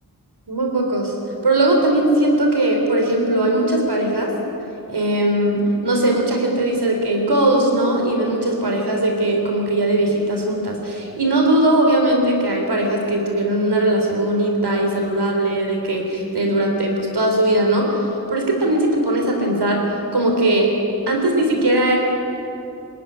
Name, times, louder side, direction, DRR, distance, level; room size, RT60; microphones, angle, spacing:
voice 1, 0.5-1.1 1.4-4.3 4.9-20.7 21.1-22.0, right 1 dB, 80° right, 1 dB, 3.6 m, -19 dB
26.5 x 12.5 x 9.7 m, 2.8 s
wide cardioid pair, 65°, 39 cm